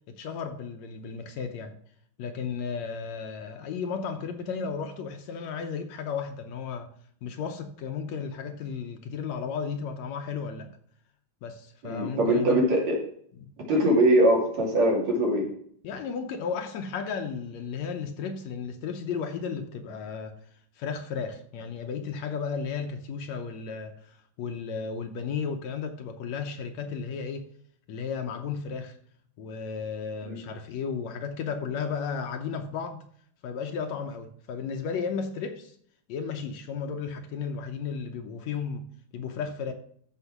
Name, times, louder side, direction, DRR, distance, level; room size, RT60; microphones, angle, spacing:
voice 1, 0.1-1.7 2.2-6.9 7.2-10.7 11.4-12.6 13.4-13.5 15.8-20.4 20.8-27.5 27.9-28.9 29.4-33.0 33.4-35.8 36.1-39.7, left 6 dB, 70° left, 2.0 m, -34 dB
voice 2, 11.8-13.0 13.7-15.5 30.3-30.4, right 1 dB, 65° right, 3.9 m, -22 dB
13.5 x 4.7 x 5.9 m
omnidirectional pair, 3.4 m